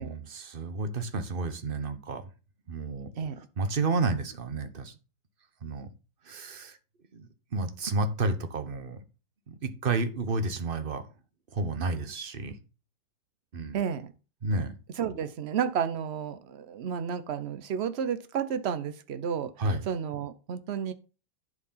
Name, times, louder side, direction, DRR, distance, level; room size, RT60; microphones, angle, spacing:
voice 1, 0.0-2.2 2.7-3.1 3.6-4.9 5.6-5.9 6.3-6.8 7.1-9.0 9.5-11.0 11.5-12.6 13.5-13.8 14.4-14.7 19.6-19.8, right 3 dB, 40° right, 0.9 m, -31 dB
voice 2, 3.1-3.5 13.7-14.1 15.0-20.9, right 7 dB, 90° right, 0.5 m, -32 dB
11.0 x 4.6 x 5.6 m
omnidirectional pair, 2.1 m